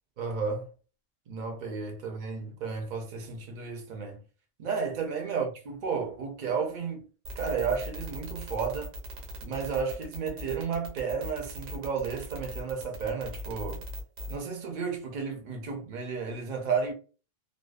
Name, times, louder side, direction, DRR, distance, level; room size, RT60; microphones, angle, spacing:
voice 1, 0.2-0.7 1.3-4.2 4.6-7.0 7.4-8.9 9.4-13.8 14.3-16.9, right 5 dB, 55° right, 0.6 m, -32 dB
sound 1, 7.2-14.4, left 1 dB, 90° right, 1.2 m, -39 dB
2.6 x 2.2 x 2.2 m
omnidirectional pair, 1.3 m